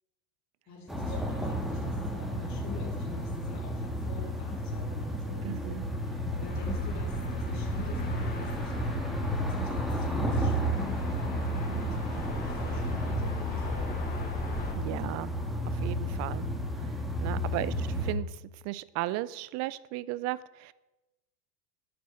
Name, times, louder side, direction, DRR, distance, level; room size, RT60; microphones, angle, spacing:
voice 1, 0.7-14.0, left 3 dB, 35° left, -3 dB, 3.5 m, -46 dB
sound 1, 0.9-18.1, equal, ahead, 1.6 m, -32 dB
voice 2, 5.4-5.8 14.8-15.3 15.8-16.5 17.2-18.4 18.6-20.7, right 16 dB, 35° right, 19 dB, 0.5 m, -35 dB
sound 2, 6.5-14.7, left 2 dB, 20° left, 3.7 m, -41 dB
12.5 x 9.5 x 7.6 m, 1.0 s
supercardioid pair, 135°, 48 cm